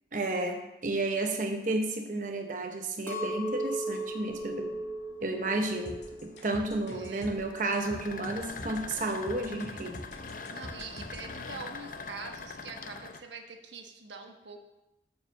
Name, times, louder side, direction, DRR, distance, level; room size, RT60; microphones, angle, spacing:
voice 1, 0.1-4.8 5.2-10.0, right 2 dB, 45° right, 4 dB, 0.8 m, -32 dB
Chink clink, 3.1-7.4 7.8-8.4, right 1 dB, 15° left, 1.3 m, -37 dB
sound 1, 3.4-13.2, left 4 dB, 50° left, 0.6 m, -44 dB
sound 2, 5.9-11.3, equal, 85° left, 1.9 m, -45 dB
voice 2, 6.9-7.3 10.5-14.6, right 4 dB, 90° right, 4 dB, 1.2 m, -44 dB
7.4 x 6.6 x 6.9 m, 0.94 s
head